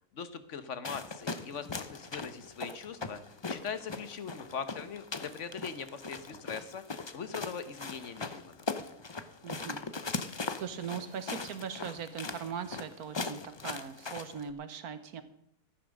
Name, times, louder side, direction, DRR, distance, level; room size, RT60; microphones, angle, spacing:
voice 1, 0.1-3.2 3.5-8.5, left 6 dB, 55° left, 12 dB, 1.3 m, -41 dB
sound 1, 0.8-14.5, left 3 dB, 30° left, 0.5 m, -40 dB
voice 2, 9.4-9.8 10.1-10.2 10.5-15.2, right 7 dB, 80° right, 11 dB, 1.6 m, -40 dB
14.0 x 9.8 x 6.4 m, 0.70 s
omnidirectional pair, 1.6 m